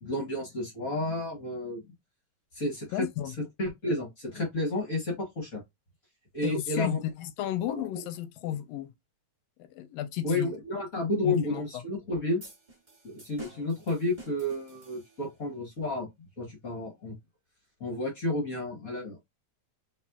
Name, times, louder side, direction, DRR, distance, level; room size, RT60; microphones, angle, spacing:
voice 1, 0.0-1.8 2.5-5.6 6.3-7.0 7.7-7.9 10.2-12.4 13.0-17.1 17.8-19.2, left 2 dB, 55° left, 1.0 m, -31 dB
voice 2, 2.9-3.3 6.4-8.9 9.6-10.5 11.2-11.8, left 12 dB, 80° left, 1.6 m, -33 dB
sound 1, 12.4-15.5, right 2 dB, 20° right, 1.4 m, -50 dB
4.1 x 3.0 x 2.3 m
omnidirectional pair, 3.3 m